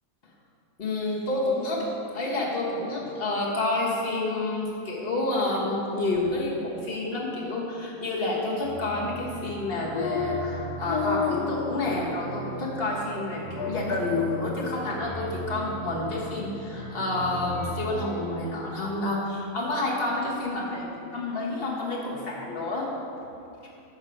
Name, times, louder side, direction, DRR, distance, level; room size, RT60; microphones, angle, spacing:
voice 1, 0.8-1.9 2.1-22.9, left 2 dB, 40° left, -3 dB, 0.9 m, -29 dB
sound 1, 8.6-18.3, right 3 dB, 75° right, 2.9 m, -39 dB
sound 2, 9.9-10.5 10.9-12.1 12.4-12.5 12.9-13.3 13.5-14.4, left 6 dB, 70° left, 0.9 m, -31 dB
7.1 x 6.2 x 5.1 m, 2.7 s
omnidirectional pair, 2.3 m